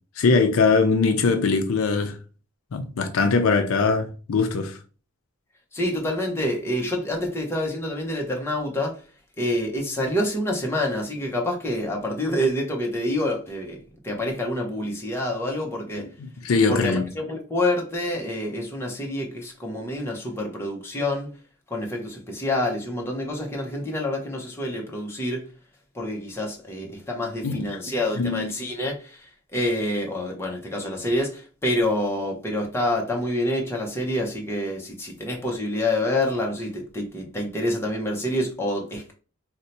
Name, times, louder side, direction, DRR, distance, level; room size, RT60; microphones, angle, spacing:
voice 1, 0.2-2.2 2.7-4.8 16.0-17.0 27.4-27.8 28.2-28.5, left 4 dB, 65° left, 0.4 m, -22 dB
voice 2, 5.7-9.0 9.4-16.1 16.7-21.3 21.7-25.5 25.9-39.1, left 1 dB, 10° left, 0.7 m, -27 dB
2.6 x 2.1 x 4.0 m
head